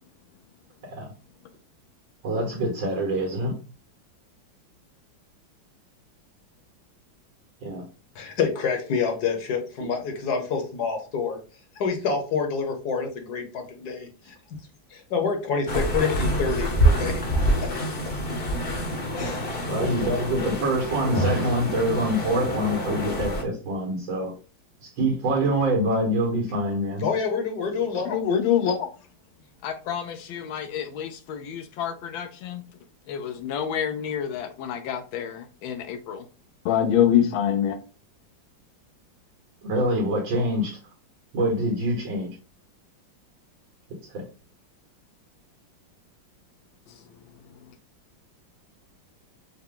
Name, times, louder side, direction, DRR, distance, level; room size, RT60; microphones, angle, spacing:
voice 1, 2.2-3.5 7.6-7.8 9.8-9.9 19.7-24.3 24.8-27.1 39.6-40.8 41.3-42.4 44.1-44.2, right 1 dB, 80° right, 2.1 m, -25 dB
voice 2, 8.1-11.4 11.8-14.3 14.9-17.2 17.6-17.7 19.2-19.6 27.0-28.2, left 5 dB, 60° left, 1.4 m, -27 dB
sound 1, 15.7-23.4, right 1 dB, 40° left, 0.9 m, -26 dB
voice 3, 28.1-28.9 29.6-32.6 33.1-36.2 36.6-37.8, left 9 dB, 85° left, 1.4 m, -26 dB
5.8 x 2.2 x 3.7 m
omnidirectional pair, 2.1 m